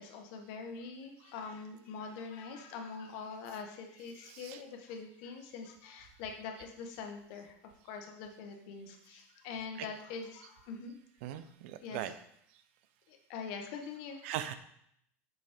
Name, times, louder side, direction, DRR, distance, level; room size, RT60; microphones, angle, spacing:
voice 1, 0.0-7.5 7.8-10.9 11.8-12.1 13.1-14.3, left 5 dB, 65° left, 4 dB, 1.2 m, -44 dB
voice 2, 4.1-4.6 9.8-9.9 11.2-12.1 14.2-14.5, right 11 dB, 70° right, 11 dB, 0.6 m, -40 dB
6.2 x 5.3 x 3.5 m, 0.71 s
supercardioid pair, 130°, 7 cm